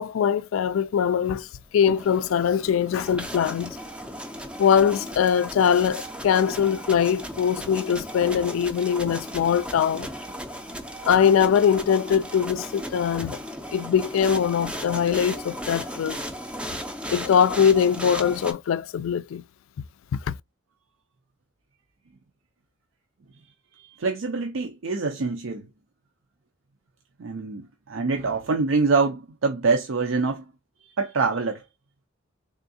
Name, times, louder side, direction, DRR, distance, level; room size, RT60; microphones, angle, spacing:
voice 1, 0.0-1.5 1.7-3.8 4.6-10.1 11.0-13.4 13.7-16.2 17.1-19.4 20.3-20.4, left 7 dB, 75° left, 0.3 m, -22 dB
sound 1, 1.7-18.5, equal, 5° right, 0.4 m, -36 dB
voice 2, 24.0-25.7 27.2-30.5 31.0-31.6, right 4 dB, 70° right, 0.5 m, -25 dB
3.6 x 3.4 x 2.6 m
head